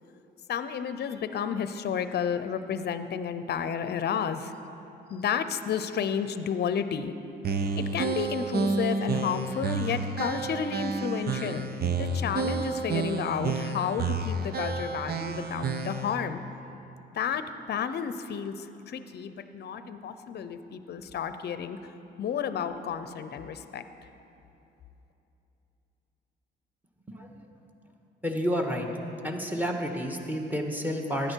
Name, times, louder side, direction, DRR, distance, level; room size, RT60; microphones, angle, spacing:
voice 1, 0.5-4.5 5.1-7.1 7.8-11.7 12.0-16.4 17.1-21.8 22.2-23.8, left 7 dB, 55° left, 11 dB, 0.7 m, -31 dB
sound 1, 7.4-16.2, right 4 dB, 50° right, 0.9 m, -30 dB
voice 2, 28.2-28.9 29.2-31.3, equal, 10° right, 2 dB, 1.6 m, -30 dB
15.5 x 10.5 x 4.6 m, 2.9 s
cardioid pair, 90°, 20 cm